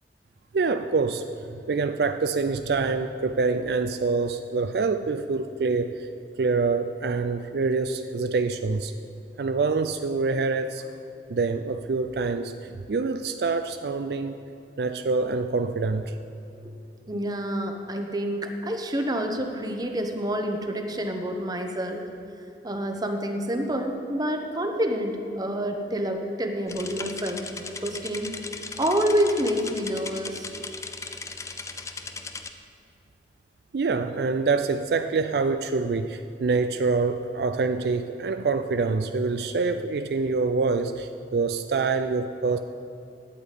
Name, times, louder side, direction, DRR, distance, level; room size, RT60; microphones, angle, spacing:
voice 1, 0.5-6.1 6.4-8.9 9.4-10.8 11.3-14.4 14.8-16.1 33.7-42.6, right 4 dB, 60° right, 9 dB, 0.4 m, -26 dB
voice 2, 17.1-22.1 22.6-28.3 28.8-30.5, equal, 20° right, 4 dB, 0.9 m, -28 dB
sound 1, 26.7-32.5, left 4 dB, 15° left, 0.5 m, -38 dB
9.7 x 8.6 x 8.3 m, 2.6 s
head